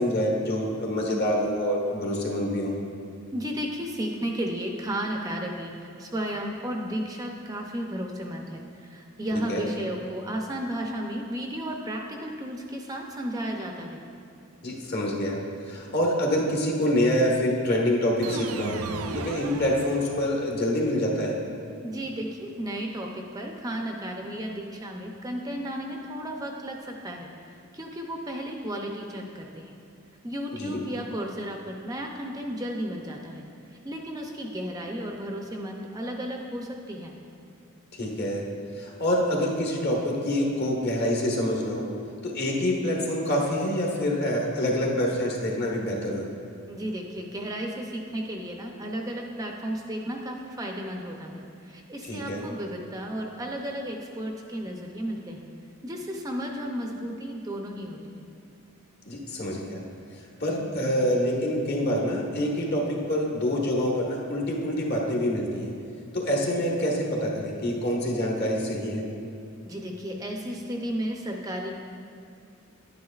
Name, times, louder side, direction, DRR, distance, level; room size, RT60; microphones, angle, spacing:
voice 1, 0.0-2.8 9.5-9.6 14.6-15.4 15.7-18.8 19.1-21.3 30.5-30.8 38.0-38.4 38.8-41.9 42.2-46.2 52.1-52.4 59.1-59.8 60.4-65.7 66.1-69.0, equal, 50° left, -2 dB, 1.4 m, -26 dB
voice 2, 3.3-14.0 21.8-27.3 27.7-29.7 30.2-33.4 33.7-37.2 46.7-55.5 55.8-58.3 69.6-71.7, equal, 15° right, 1 dB, 0.5 m, -33 dB
sound 1, 18.2-20.5, right 4 dB, 85° right, 0.5 m, -36 dB
10.0 x 9.4 x 2.4 m, 2.4 s
head